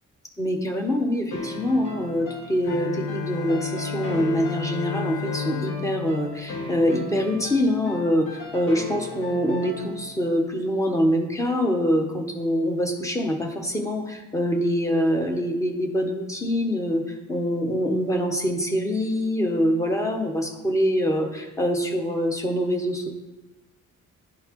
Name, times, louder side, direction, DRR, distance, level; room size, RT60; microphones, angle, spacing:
voice 1, 0.4-23.1, equal, 10° left, 3 dB, 0.5 m, -24 dB
sound 1, 1.3-10.2, left 2 dB, 90° left, 1.7 m, -38 dB
Bowed string instrument, 2.6-7.5, left 7 dB, 70° left, 0.6 m, -32 dB
10.5 x 3.9 x 2.9 m, 1.1 s
wide cardioid pair, 180°, 31 cm